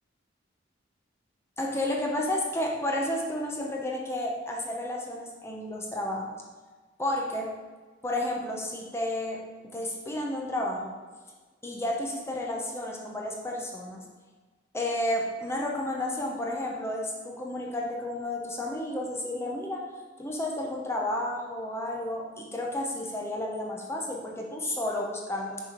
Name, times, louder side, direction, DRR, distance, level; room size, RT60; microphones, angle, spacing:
voice 1, 1.6-6.4 7.0-7.5 8.0-10.9 11.6-14.0 14.7-19.8 20.2-25.6, left 1 dB, 15° left, -1 dB, 0.8 m, -31 dB
6.2 x 4.8 x 5.1 m, 1.3 s
head